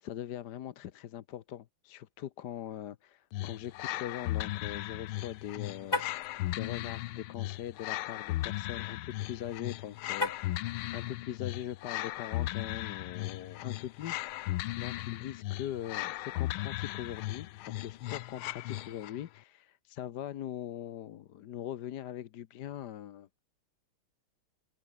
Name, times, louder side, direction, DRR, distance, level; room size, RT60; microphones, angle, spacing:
voice 1, 0.0-14.5 14.8-23.4, left 11 dB, 60° left, 1.3 m, -42 dB
sound 1, 3.3-19.2, left 16 dB, 85° left, 1.5 m, -37 dB
Car, 5.8-6.3 10.1-10.6, left 2 dB, 15° left, 1.4 m, -33 dB
omnidirectional pair, 2.3 m